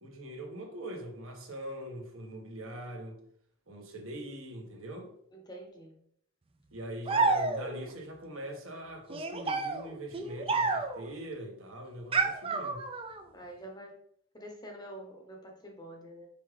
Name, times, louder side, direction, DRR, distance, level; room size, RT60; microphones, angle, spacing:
voice 1, 0.0-3.2 3.7-5.1 6.7-12.8, right 1 dB, 60° right, 1 dB, 1.4 m, -42 dB
voice 2, 5.3-5.9 13.3-13.9 14.3-16.3, right 1 dB, 20° left, 2 dB, 0.9 m, -46 dB
sound 1, 7.1-7.9 9.1-11.1 12.1-13.2, right 3 dB, 25° right, 0.5 m, -30 dB
5.7 x 5.0 x 3.3 m, 0.66 s
head